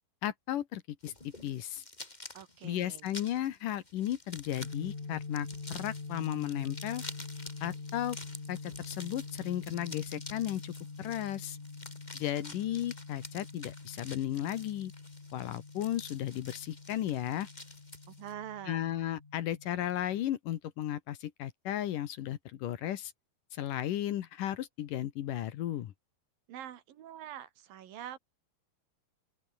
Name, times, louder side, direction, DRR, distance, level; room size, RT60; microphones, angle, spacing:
voice 1, 0.2-1.1 1.4-1.8 2.6-7.0 7.6-8.2 8.5-11.6 12.1-14.9 15.3-17.5 18.7-23.1 23.5-25.9, left 12 dB, 75° left, 2.8 m, -35 dB
sound 1, 1.0-18.3, left 2 dB, 15° left, 2.8 m, -50 dB
voice 2, 2.3-3.1 18.1-18.9 26.5-28.2, right 11 dB, 85° right, 3.6 m, -45 dB
sound 2, 4.6-20.2, left 4 dB, 55° left, 7.8 m, -45 dB
open air
omnidirectional pair, 3.9 m